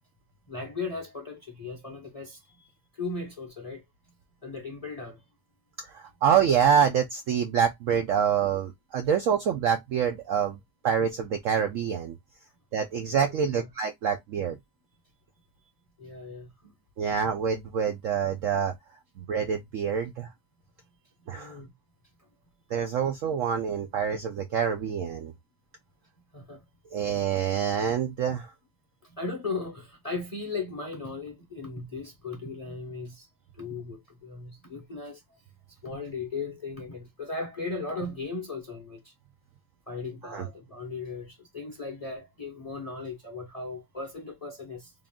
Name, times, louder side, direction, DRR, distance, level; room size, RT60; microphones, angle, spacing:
voice 1, 0.5-2.7 2.9-3.8 4.4-5.2 13.3-13.7 16.0-16.7 21.3-21.7 26.3-26.6 29.0-33.3 33.5-35.2 35.8-39.1 39.9-44.9, left 3 dB, 30° left, 0.7 m, -37 dB
voice 2, 5.8-10.6 10.8-12.1 12.7-14.6 17.0-18.7 19.2-20.3 21.3-21.6 22.7-25.3 26.9-28.5 40.2-40.5, right 8 dB, 75° right, 0.7 m, -26 dB
3.6 x 2.4 x 3.5 m
omnidirectional pair, 1.8 m